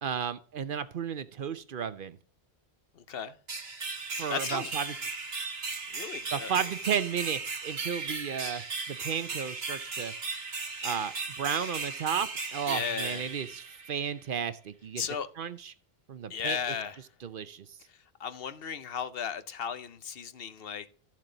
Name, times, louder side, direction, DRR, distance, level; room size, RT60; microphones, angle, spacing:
voice 1, 0.0-2.2 4.2-4.9 6.3-10.1 10.8-15.0 15.4-15.7 16.1-16.6 17.2-17.7, right 7 dB, 60° right, 0.8 m, -33 dB
voice 2, 2.9-3.4 4.3-4.8 5.9-6.7 12.7-13.3 15.0-15.3 16.3-17.0 17.9-20.9, left 7 dB, 70° left, 1.0 m, -36 dB
sound 1, 3.5-14.2, right 4 dB, 80° right, 1.6 m, -37 dB
13.0 x 7.6 x 3.9 m
omnidirectional pair, 1.0 m